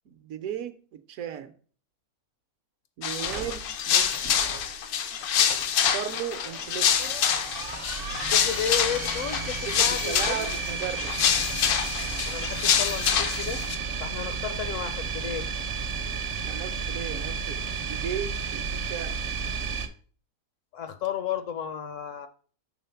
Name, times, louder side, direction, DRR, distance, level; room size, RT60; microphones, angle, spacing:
voice 1, 0.1-1.5 3.0-4.4 5.9-7.1 9.6-11.1 16.5-19.2, right 9 dB, 70° right, 10 dB, 1.0 m, -36 dB
sound 1, 3.0-13.8, left 8 dB, 80° left, 1.2 m, -26 dB
sound 2, 3.2-19.9, right 5 dB, 50° right, 0.7 m, -33 dB
voice 2, 8.3-10.5 12.3-13.6 14.0-15.5 20.7-22.3, left 8 dB, 65° left, 10 dB, 0.9 m, -33 dB
6.2 x 3.6 x 5.6 m, 0.43 s
omnidirectional pair, 1.6 m